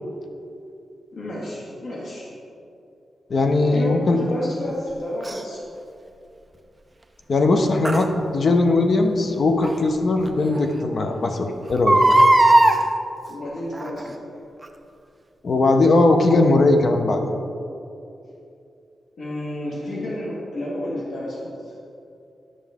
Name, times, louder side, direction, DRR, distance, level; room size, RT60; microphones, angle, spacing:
voice 1, 1.1-2.3 3.6-5.6 13.3-14.2 19.2-21.7, left 1 dB, 70° left, -6 dB, 1.8 m, -31 dB
voice 2, 3.3-4.3 7.3-12.0 15.4-17.3, left 2 dB, 45° left, 5 dB, 0.7 m, -19 dB
Crying sobbing, 5.2-5.4 7.8-8.0 9.6-9.7 10.2-10.3 10.6-10.7 11.7-12.8 13.7-14.1 14.6-14.7, right 1 dB, 15° right, 0.5 m, -16 dB
11.0 x 6.2 x 3.6 m, 2.7 s
wide cardioid pair, 170°, 0 cm